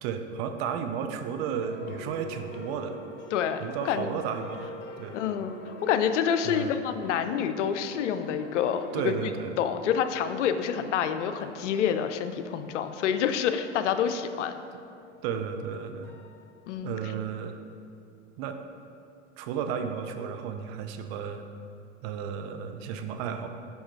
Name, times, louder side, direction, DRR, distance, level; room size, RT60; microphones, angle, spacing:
voice 1, 0.0-3.0 3.6-4.7 5.0-5.2 6.4-6.8 8.9-9.5 15.2-16.1 16.8-17.6 18.4-18.6 19.4-21.4 22.0-23.5, right 7 dB, 55° right, 7 dB, 0.6 m, -33 dB
sound 1, 1.2-16.8, equal, 55° left, 1.2 m, -45 dB
voice 2, 3.3-4.1 5.1-9.3 9.6-14.5 16.7-16.9, left 8 dB, 75° left, 9 dB, 0.5 m, -28 dB
5.4 x 5.0 x 4.5 m, 2.4 s
hypercardioid pair, 90°, 37 cm